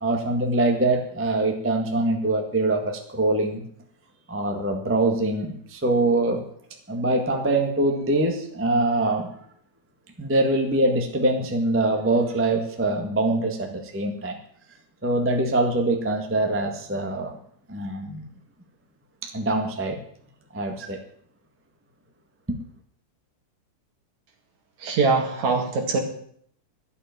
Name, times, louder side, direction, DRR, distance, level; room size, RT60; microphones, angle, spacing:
voice 1, 0.0-3.6 4.3-6.4 6.9-9.3 10.2-14.4 15.0-17.3 17.7-18.2 19.2-20.0 20.5-21.0 22.5-22.6, right 2 dB, 10° right, 3 dB, 0.8 m, -24 dB
voice 2, 24.8-26.0, right 4 dB, 65° right, 3 dB, 3.5 m, -22 dB
12.0 x 8.1 x 9.4 m, 0.64 s
omnidirectional pair, 3.6 m